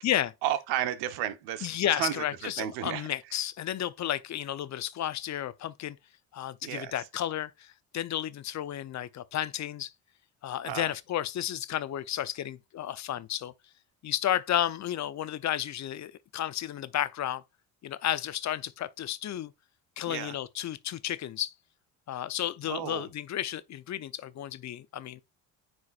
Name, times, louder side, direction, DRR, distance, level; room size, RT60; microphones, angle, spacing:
voice 1, 0.4-3.1 6.6-6.9 10.6-10.9 20.1-20.4 22.6-23.1, right 12 dB, 75° right, 1.1 m, -33 dB
voice 2, 1.6-6.0 6.3-9.9 10.4-13.5 14.0-17.4 17.8-19.5 20.0-21.5 22.1-25.2, left 11 dB, 45° left, 0.7 m, -32 dB
9.4 x 4.7 x 2.4 m
supercardioid pair, 75°, 38 cm